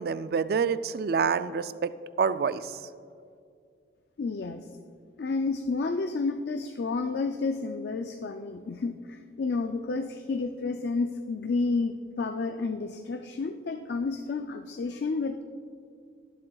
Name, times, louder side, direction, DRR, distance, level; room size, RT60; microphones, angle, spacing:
voice 1, 0.0-2.8, right 5 dB, 55° right, 13 dB, 0.3 m, -27 dB
voice 2, 4.2-4.7 5.2-15.4, left 3 dB, 60° left, 7 dB, 0.4 m, -30 dB
20.0 x 7.6 x 2.3 m, 2.3 s
head